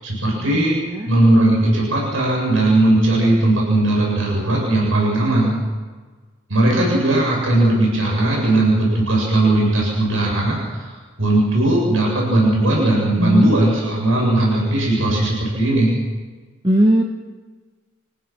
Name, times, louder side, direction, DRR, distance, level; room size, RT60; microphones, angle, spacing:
voice 1, 0.0-0.8 1.1-5.5 6.5-10.9 11.2-15.9, right 1 dB, 85° right, -2 dB, 7.7 m, -18 dB
voice 2, 0.5-1.1 13.2-13.5 16.6-17.0, equal, 25° right, 2 dB, 1.3 m, -17 dB
28.5 x 15.5 x 6.2 m, 1.4 s
head